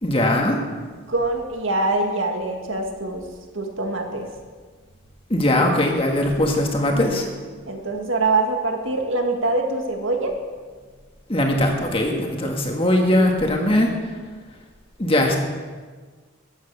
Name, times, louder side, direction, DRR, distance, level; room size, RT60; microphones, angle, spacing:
voice 1, 0.0-0.6 5.3-7.3 11.3-14.1 15.0-15.4, left 1 dB, 25° left, 2 dB, 1.8 m, -20 dB
voice 2, 1.1-3.2 3.5-4.3 6.9-7.3 7.7-10.3 12.4-12.5, right 2 dB, 75° right, 3 dB, 1.9 m, -24 dB
13.0 x 9.6 x 6.8 m, 1.5 s
head